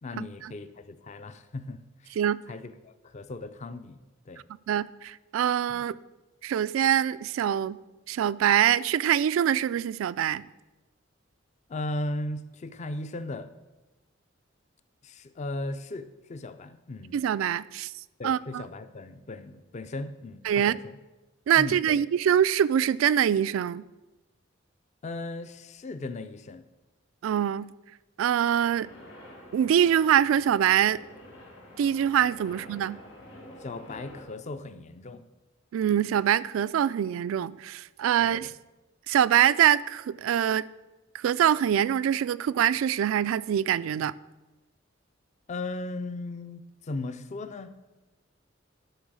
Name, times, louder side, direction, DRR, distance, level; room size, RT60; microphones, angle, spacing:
voice 1, 0.0-2.2 2.5-4.0 4.3-4.4 5.7-5.8 11.7-13.5 15.0-17.2 18.2-21.0 21.6-22.0 25.0-26.6 33.6-35.2 38.2-38.5 45.5-47.7, left 2 dB, 35° left, 11 dB, 0.4 m, -37 dB
voice 2, 4.7-5.9 6.4-7.8 8.1-10.5 17.1-17.9 18.2-18.6 20.5-20.7 21.5-23.8 27.2-27.7 28.2-28.9 29.5-31.0 31.8-33.0 35.7-38.5 39.1-40.7 41.1-44.1, right 9 dB, 90° right, 17 dB, 0.3 m, -24 dB
sound 1, 28.7-34.2, left 1 dB, 70° left, 3.3 m, -48 dB
11.0 x 4.0 x 6.3 m, 1.1 s
head